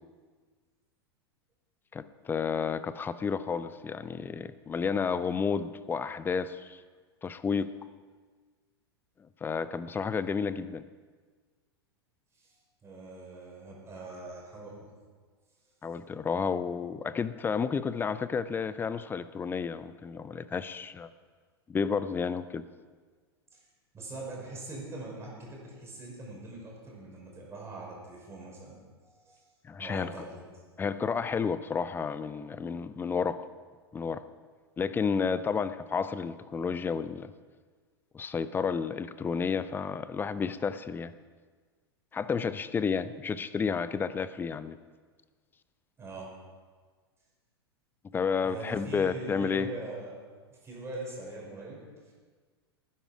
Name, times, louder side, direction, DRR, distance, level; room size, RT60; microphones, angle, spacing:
voice 1, 1.9-6.8 7.2-7.7 9.4-10.8 15.8-21.1 21.7-22.6 29.6-30.1 30.8-33.5 33.9-34.2 34.8-37.3 38.1-41.1 42.1-44.8 48.1-49.7, left 6 dB, 15° left, 15 dB, 0.6 m, -31 dB
voice 2, 12.3-14.9 23.5-23.6 23.9-29.4 29.8-30.4 46.0-46.3 48.4-50.2 50.5-52.1, right 2 dB, 20° right, -3 dB, 5.4 m, -42 dB
19.5 x 10.0 x 5.0 m, 1.5 s
figure-of-eight pair, 90°, 14 cm